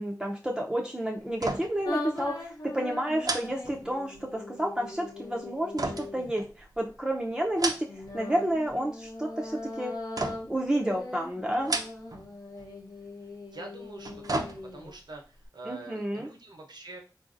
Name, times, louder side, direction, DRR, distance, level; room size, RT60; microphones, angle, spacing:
voice 1, 0.0-7.9 8.1-9.9 10.5-11.8 15.6-16.3, right 1 dB, 10° right, -1 dB, 0.5 m, -30 dB
sound 1, 1.3-1.9 2.2-2.3 3.2-4.3 5.8-6.9 7.4-8.2 8.5-9.1 10.2-10.7 11.5-12.3 12.6-12.7 13.8-15.0 15.4-15.5, right 2 dB, 60° right, 0.5 m, -34 dB
sound 2, 1.8-6.4 7.9-14.9, left 2 dB, 65° left, 0.8 m, -40 dB
voice 2, 13.5-14.4 14.7-17.0, right 2 dB, 80° right, 2 dB, 0.8 m, -44 dB
3.8 x 2.6 x 2.5 m, 0.33 s
wide cardioid pair, 45°, 7 cm